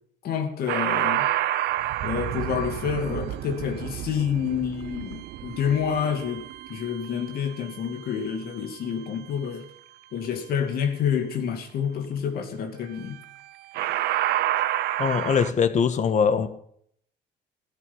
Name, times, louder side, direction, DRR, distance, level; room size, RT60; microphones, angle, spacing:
voice 1, 0.2-1.3 2.0-9.7 10.1-13.2, left 7 dB, 65° left, 2.7 m, -28 dB
sound 1, 0.7-7.9 13.1-13.4 13.7-15.5, right 13 dB, 80° right, 0.9 m, -29 dB
voice 2, 15.0-16.5, left 6 dB, 45° left, 1.6 m, -22 dB
16.5 x 13.5 x 5.7 m
cardioid pair, 110°, 17 cm